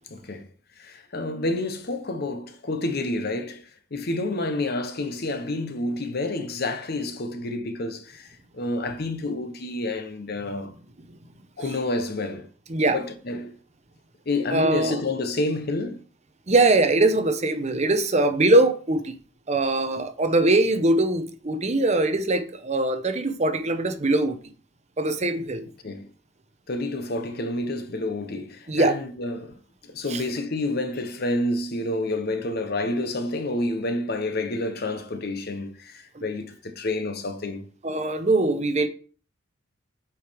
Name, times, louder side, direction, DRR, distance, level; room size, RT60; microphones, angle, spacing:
voice 1, 0.1-0.5 0.8-10.7 11.6-12.5 12.9-13.5 14.3-16.0 25.8-26.1 26.7-29.6 29.8-37.7, left 2 dB, 55° left, 0.9 m, -29 dB
voice 2, 14.5-15.0 16.5-19.1 19.5-24.4 25.0-25.6 28.7-29.0 30.1-30.2 36.1-36.2 37.8-38.9, right 2 dB, 35° right, 0.8 m, -22 dB
8.1 x 4.8 x 3.5 m
head